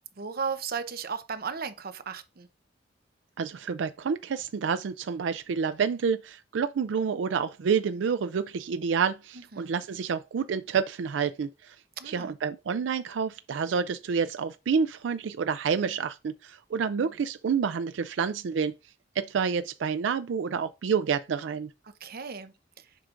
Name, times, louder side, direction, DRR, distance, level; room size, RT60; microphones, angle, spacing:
voice 1, 0.2-2.5 9.5-9.7 12.0-12.4 22.0-22.5, right 6 dB, 55° right, 0.7 m, -35 dB
voice 2, 3.4-11.8 12.0-18.7 19.2-21.7, right 6 dB, 75° right, 0.4 m, -28 dB
7.5 x 5.0 x 2.5 m
head